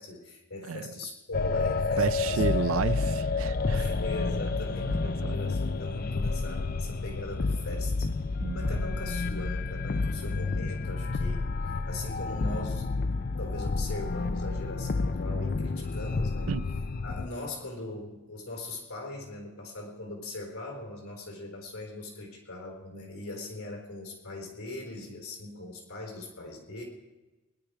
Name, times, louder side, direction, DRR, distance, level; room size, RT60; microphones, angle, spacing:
voice 1, 0.0-2.4 3.7-12.9 13.4-16.5 17.0-26.8, left 2 dB, 80° left, 1 dB, 3.9 m, -40 dB
voice 2, 0.6-0.9 2.0-4.0 4.9-5.4 8.4-8.8 16.5-16.7, right 6 dB, 70° right, 17 dB, 0.4 m, -32 dB
sound 1, 1.3-17.3, left 3 dB, 45° left, 0.4 m, -30 dB
20.5 x 10.5 x 4.9 m, 1.1 s
head